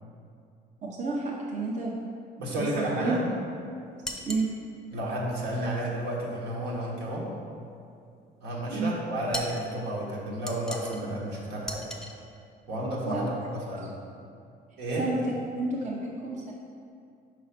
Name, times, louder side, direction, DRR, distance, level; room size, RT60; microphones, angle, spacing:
voice 1, 0.8-2.0 2.5-3.2 4.3-4.5 8.7-8.9 13.1-13.3 15.0-16.5, right 3 dB, 45° right, -3 dB, 0.8 m, -30 dB
voice 2, 2.4-3.2 4.2-4.3 4.9-7.3 8.4-11.9 12.7-13.9 14.8-15.1, right 1 dB, 80° right, -4 dB, 1.5 m, -31 dB
sound 1, 4.0-4.5 9.3-9.7 10.5-11.0 11.7-12.2, equal, 5° left, 0.6 m, -37 dB
4.9 x 4.6 x 6.0 m, 2.4 s
cardioid pair, 110°, 17 cm